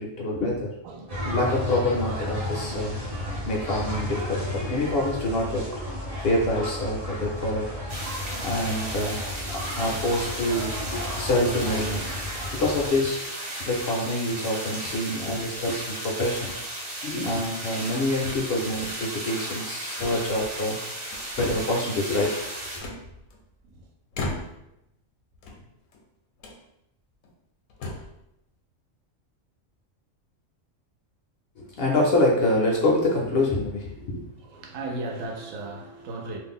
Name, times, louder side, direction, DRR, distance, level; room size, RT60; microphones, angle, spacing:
voice 1, 0.0-0.7 1.2-3.0 3.4-5.7 6.2-7.6 8.4-9.2 9.5-12.0 12.5-13.2 13.7-16.5 17.0-20.8 21.4-22.5 31.6-34.3, left 1 dB, 65° left, -1 dB, 0.7 m, -26 dB
sound 1, 1.1-12.9, left 1 dB, 35° right, 0.6 m, -33 dB
sound 2, 7.9-22.8, right 1 dB, 55° right, 1.1 m, -35 dB
sound 3, 13.7-14.1 14.9-15.6 16.3-16.6 17.0-17.1 17.6-18.0 18.2-18.9 20.0-20.7 21.1-21.8 22.8-23.6 24.1-24.8 25.3-26.0 26.4-26.6 27.2-27.3 27.7-28.2, left 2 dB, 80° left, 1.0 m, -38 dB
voice 2, 34.4-36.4, right 2 dB, 80° right, 2 dB, 0.9 m, -36 dB
2.5 x 2.0 x 3.6 m, 0.85 s
omnidirectional pair, 1.3 m